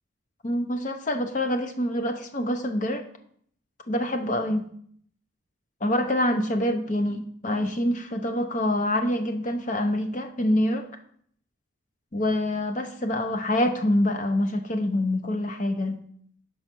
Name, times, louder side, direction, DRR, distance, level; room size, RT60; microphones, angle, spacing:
voice 1, 0.4-3.0 3.9-4.7 5.8-10.9 12.1-16.0, left 1 dB, 35° left, 6 dB, 0.6 m, -26 dB
5.5 x 4.7 x 6.0 m, 0.63 s
head